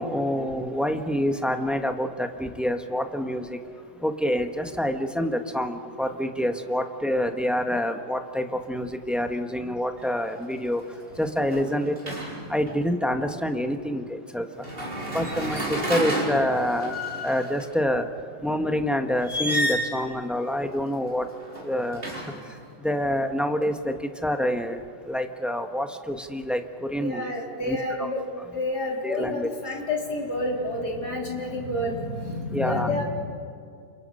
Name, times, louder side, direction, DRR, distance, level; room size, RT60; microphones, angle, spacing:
voice 1, 0.0-3.6 4.0-10.8 11.2-12.1 12.5-14.5 15.1-16.9 17.2-18.1 18.4-21.3 21.6-22.0 22.8-23.9 24.2-26.6 26.9-27.3 27.7-28.1 29.0-29.5 32.5-32.9, equal, ahead, 5 dB, 1.0 m, -27 dB
sound 1, 10.0-10.3 10.6-12.7 14.6-17.6 19.2-20.0 21.2-22.6, equal, 30° right, 4.6 m, -31 dB
voice 2, 27.0-28.2 28.5-33.0, left 1 dB, 65° left, -2 dB, 4.5 m, -29 dB
30.0 x 28.5 x 5.6 m, 2.3 s
omnidirectional pair, 1.8 m